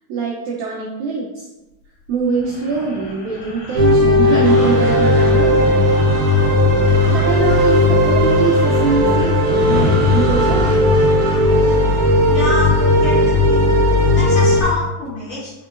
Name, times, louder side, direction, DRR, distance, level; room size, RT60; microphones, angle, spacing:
voice 1, 0.1-1.5 2.1-5.8 7.0-10.8, right 4 dB, 90° right, -3 dB, 1.6 m, -23 dB
sound 1, 2.2-6.9 7.3-12.5, left 2 dB, 85° left, 2.6 m, -30 dB
sound 2, 3.8-14.6, left 1 dB, 75° right, 1.9 m, -15 dB
sound 3, 4.4-12.8, equal, 45° right, 1.6 m, -31 dB
voice 2, 12.3-12.7 13.0-13.2 13.5-13.6 14.1-15.5, left 1 dB, 60° left, -8 dB, 1.8 m, -25 dB
5.3 x 3.7 x 2.4 m, 1.0 s
omnidirectional pair, 4.1 m